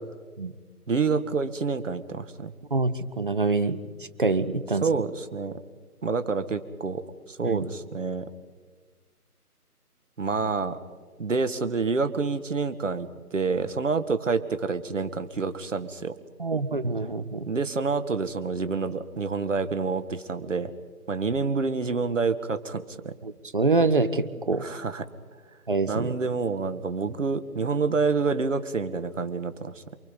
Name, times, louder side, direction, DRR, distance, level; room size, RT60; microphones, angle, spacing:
voice 1, 0.9-2.5 4.8-5.5 6.0-7.0 7.3-8.3 10.2-10.8 11.2-16.1 17.5-20.7 21.1-23.1 24.5-25.0 25.9-29.8, right 4 dB, 55° right, 11 dB, 1.7 m, -28 dB
voice 2, 2.7-3.8 4.2-4.8 7.4-7.6 16.4-17.5 23.2-24.7 25.7-26.1, right 3 dB, 35° right, 11 dB, 0.9 m, -25 dB
28.5 x 23.0 x 5.3 m, 1.5 s
figure-of-eight pair, 165°, 46 cm